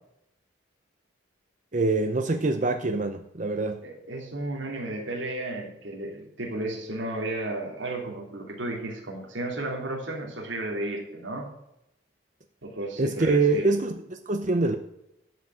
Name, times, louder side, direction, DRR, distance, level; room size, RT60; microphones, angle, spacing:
voice 1, 1.7-3.8 13.0-14.8, right 3 dB, 40° right, 7 dB, 0.7 m, -25 dB
voice 2, 3.8-11.5 12.6-13.6, right 2 dB, 75° right, -1 dB, 2.9 m, -33 dB
12.0 x 6.0 x 7.8 m, 0.80 s
head